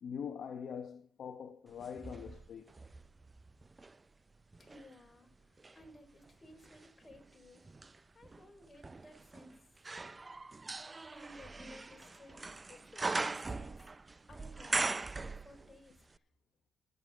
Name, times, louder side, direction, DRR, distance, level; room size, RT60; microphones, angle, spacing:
voice 1, 0.0-2.7, left 7 dB, 60° left, 1.0 m, -43 dB
sound 1, 1.8-4.0 4.5-15.9 16.1-16.2, right 3 dB, 25° right, 0.5 m, -41 dB
voice 2, 4.6-9.8 11.1-13.7 14.3-16.2, left 1 dB, 20° left, 4.2 m, -58 dB
18.5 x 8.2 x 3.6 m
cardioid pair, 90°, 0 cm